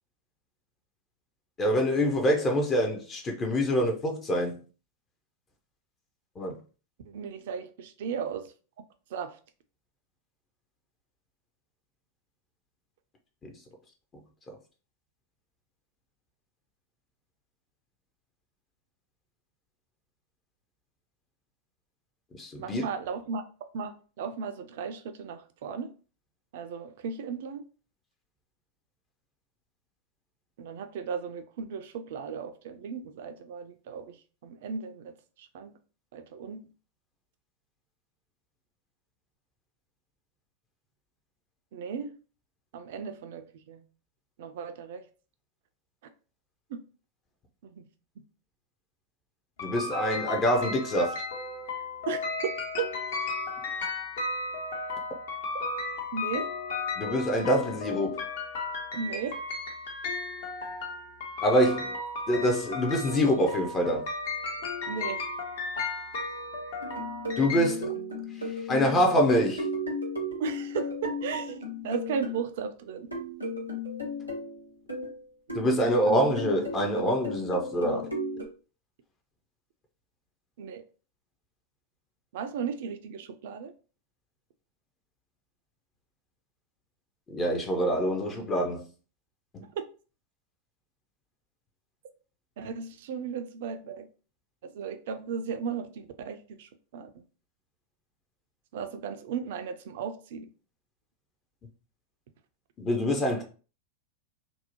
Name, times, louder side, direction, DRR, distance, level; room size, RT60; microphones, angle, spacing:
voice 1, 1.6-4.6 6.4-6.6 13.4-13.5 14.5-14.6 22.4-22.8 49.6-51.2 57.0-58.2 61.4-61.9 62.3-64.1 67.4-67.9 68.4-69.7 75.5-78.1 87.3-88.9 89.5-89.6 102.8-103.4, equal, 25° left, 0.5 m, -25 dB
voice 2, 7.1-8.5 9.1-9.4 22.6-23.4 23.7-25.9 26.5-27.6 30.6-34.2 34.4-35.7 36.1-36.7 41.7-42.1 42.7-43.8 44.4-45.1 46.7-46.8 47.6-47.9 52.1-52.2 52.8-52.9 56.1-56.5 59.0-59.4 64.9-65.2 70.4-71.6 71.8-73.1 80.6-80.8 82.3-83.7 89.7-89.8 92.6-94.1 94.7-97.2 98.7-100.5, right 6 dB, 55° right, 0.3 m, -36 dB
sound 1, 49.6-67.7, left 3 dB, 55° left, 0.7 m, -34 dB
sound 2, 66.8-72.4 73.1-75.2 75.5-78.4, left 1 dB, 90° left, 0.7 m, -35 dB
2.6 x 2.1 x 2.8 m
figure-of-eight pair, 90°, 0 cm